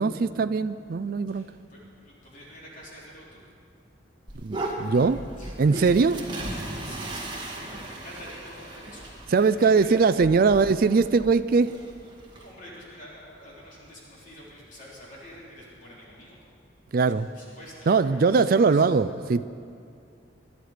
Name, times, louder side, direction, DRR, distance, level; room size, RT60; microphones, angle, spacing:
voice 1, 0.0-1.5 4.4-5.2 5.6-6.2 9.3-11.7 16.9-17.3 17.9-19.4, right 4 dB, 50° right, 12 dB, 0.4 m, -21 dB
voice 2, 1.3-3.4 5.4-6.1 6.5-9.9 10.5-10.6 12.3-16.4 17.0-18.9, equal, 40° left, -6 dB, 3.6 m, -47 dB
sound 1, 4.3-12.5, right 1 dB, 25° right, 1.9 m, -37 dB
21.5 x 11.5 x 5.0 m, 2.5 s
head